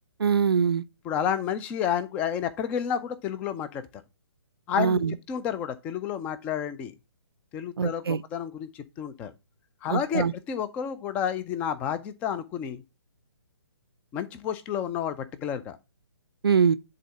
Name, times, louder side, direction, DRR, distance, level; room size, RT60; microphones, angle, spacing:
voice 1, 0.2-0.8 4.8-5.1 7.8-8.2 9.9-10.3 16.4-16.8, right 6 dB, 60° right, 0.5 m, -23 dB
voice 2, 1.0-3.9 4.7-5.0 5.3-6.9 7.5-9.3 9.8-12.8 14.1-15.8, left 8 dB, 10° left, 0.3 m, -30 dB
10.0 x 3.8 x 3.2 m
figure-of-eight pair, 135°, 14 cm